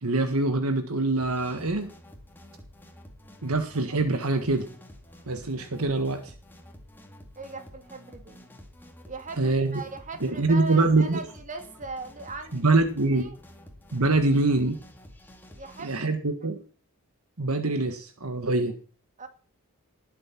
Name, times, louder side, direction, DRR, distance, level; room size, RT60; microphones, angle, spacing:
voice 1, 0.0-1.9 3.4-4.7 5.3-6.3 9.4-9.8 10.2-11.2 12.5-13.3 13.9-14.8 15.8-16.6 17.4-18.8, right 2 dB, 70° right, 8 dB, 1.5 m, -24 dB
sound 1, 1.2-16.0, equal, 10° left, 2.3 m, -49 dB
voice 2, 7.4-8.4 9.0-12.8 13.2-13.4 15.5-15.9 19.2-19.3, right 3 dB, 35° right, 6 dB, 2.5 m, -39 dB
19.5 x 7.7 x 6.0 m, 0.40 s
head